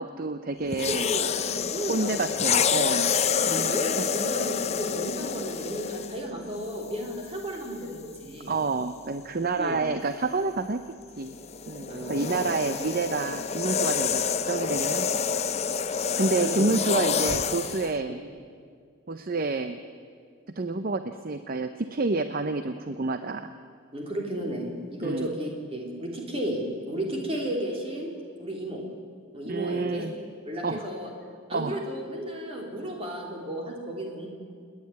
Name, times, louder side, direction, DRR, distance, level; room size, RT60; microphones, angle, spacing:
voice 1, 0.0-1.1 1.9-3.1 3.5-3.8 8.5-10.8 11.2-11.4 11.7-15.1 16.1-18.2 19.1-19.8 20.5-23.5 25.0-25.3 29.5-30.1 30.6-30.9 31.5-31.8, right 3 dB, 45° right, 10 dB, 0.6 m, -29 dB
sound 1, 0.7-6.2 7.1-7.3 11.2-17.9, left 6 dB, 30° left, 0.6 m, -28 dB
voice 2, 1.0-2.3 3.5-8.6 9.6-9.8 11.9-12.5 16.3-16.7 23.9-28.1 28.4-28.8 29.3-30.1 30.5-31.1 31.5-34.3, equal, 25° right, 0 dB, 3.4 m, -33 dB
28.5 x 9.8 x 9.4 m, 2.1 s
head